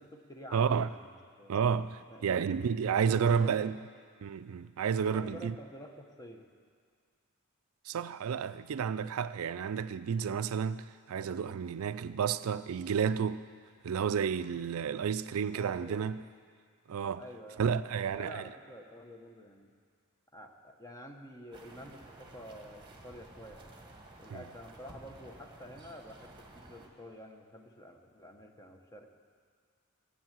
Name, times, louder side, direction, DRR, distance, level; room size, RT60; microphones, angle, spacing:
voice 1, 0.0-1.6 2.1-3.9 5.0-6.4 14.4-14.7 15.5-16.1 17.2-19.7 20.3-23.7 24.2-29.1, equal, 15° left, 1.0 m, -50 dB
voice 2, 0.5-0.9 1.5-3.8 4.2-5.6 7.9-13.4 13.8-16.2 16.9-17.2 17.6-18.5 24.3-24.4, right 7 dB, 75° right, 0.4 m, -31 dB
Content warning, 21.5-26.9, right 2 dB, 20° right, 1.5 m, -53 dB
16.0 x 8.3 x 7.5 m
head